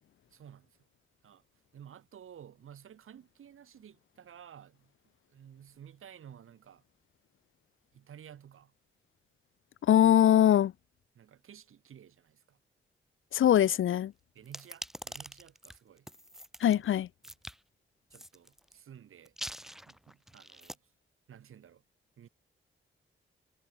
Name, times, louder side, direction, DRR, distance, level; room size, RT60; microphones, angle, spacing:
voice 1, 0.3-0.8 1.2-1.4 1.7-4.9 5.3-6.8 7.9-8.7 11.1-12.6 14.3-16.1 18.1-19.3 19.9-20.9 21.3-21.8 22.2-22.3, right 9 dB, 80° right, 6.4 m, -53 dB
voice 2, 9.9-10.7 13.3-14.1 16.6-17.1, left 11 dB, 75° left, 0.6 m, -22 dB
sound 1, 14.5-16.8 17.2-17.6 18.1-18.7 19.2-20.8, equal, ahead, 3.8 m, -44 dB
cardioid pair, 75°, 21 cm